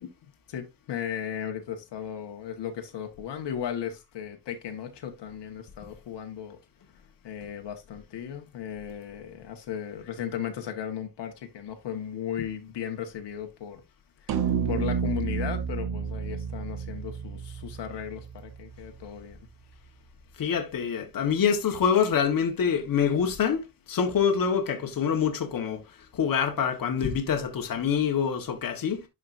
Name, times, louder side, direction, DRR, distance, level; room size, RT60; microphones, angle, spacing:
voice 1, 0.5-6.6 7.2-13.8 14.2-14.3 14.7-19.4, left 9 dB, 85° left, 1.7 m, -36 dB
sound 1, 14.3-18.8, right 7 dB, 60° right, 1.1 m, -31 dB
voice 2, 20.4-25.8 26.1-29.0, left 7 dB, 55° left, 1.5 m, -26 dB
11.0 x 5.0 x 2.6 m
wide cardioid pair, 155°, 41 cm